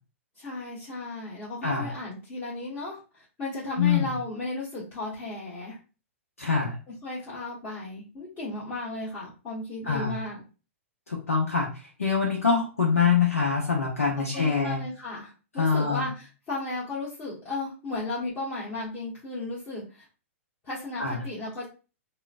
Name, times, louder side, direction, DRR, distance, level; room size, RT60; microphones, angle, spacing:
voice 1, 0.4-5.8 6.9-10.4 14.2-20.1 20.6-21.7, left 2 dB, 30° left, -9 dB, 1.3 m, -35 dB
voice 2, 3.8-4.1 6.4-6.8 9.8-10.1 11.1-11.7 12.0-14.8 15.6-16.0 21.0-21.2, left 5 dB, 85° left, -1 dB, 0.7 m, -24 dB
3.7 x 2.1 x 2.4 m, 0.33 s
figure-of-eight pair, 110°, 8 cm